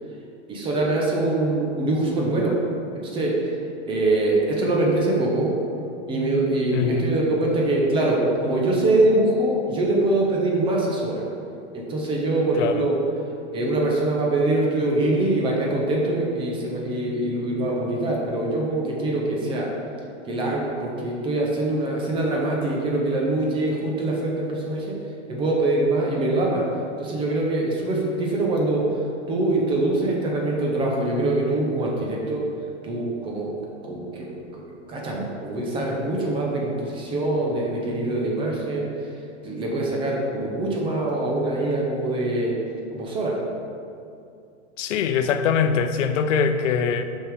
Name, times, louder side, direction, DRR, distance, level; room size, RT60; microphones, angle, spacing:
voice 1, 0.5-2.6 3.0-3.3 3.9-5.5 6.1-11.2 11.7-13.0 13.5-19.7 20.3-24.9 25.3-26.6 27.0-28.8 29.3-32.4 32.8-33.5 33.8-34.6 34.9-38.9 39.4-42.5 42.9-43.3, right 2 dB, 15° right, -2 dB, 0.8 m, -23 dB
voice 2, 6.7-7.1 12.5-12.8 44.8-47.0, left 6 dB, 85° left, 9 dB, 0.6 m, -23 dB
6.0 x 5.5 x 4.8 m, 2.5 s
supercardioid pair, 160°, 36 cm